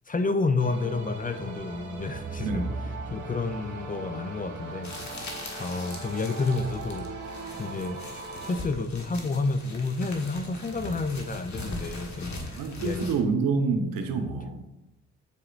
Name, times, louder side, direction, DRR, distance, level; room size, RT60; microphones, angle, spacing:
voice 1, 0.1-2.6 3.1-7.1 7.6-8.0 8.4-13.2, left 3 dB, 25° left, 0.6 m, -30 dB
sound 1, 0.6-8.6, right 3 dB, 60° right, 1.5 m, -38 dB
sound 2, 4.8-13.2, left 2 dB, 55° left, 1.5 m, -40 dB
voice 2, 12.6-14.7, right 4 dB, 80° right, 0.8 m, -27 dB
8.4 x 4.8 x 2.5 m
supercardioid pair, 50°, 34 cm